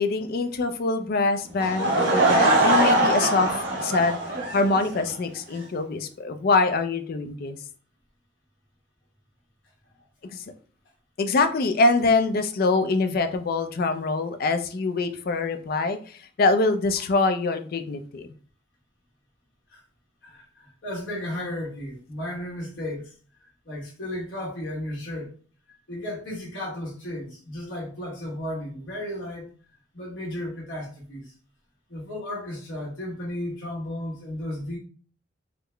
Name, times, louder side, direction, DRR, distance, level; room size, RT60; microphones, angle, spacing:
voice 1, 0.0-3.5 3.8-4.2 4.5-7.6 10.3-10.4 11.2-18.3, left 3 dB, 55° left, 0.4 m, -24 dB
Laughter / Crowd, 1.6-5.1, right 2 dB, 70° right, 1.1 m, -22 dB
voice 2, 20.2-23.1 23.6-25.3 25.7-29.5 29.9-31.3 31.9-34.8, left 1 dB, 85° left, 1.2 m, -34 dB
3.6 x 2.0 x 3.3 m
head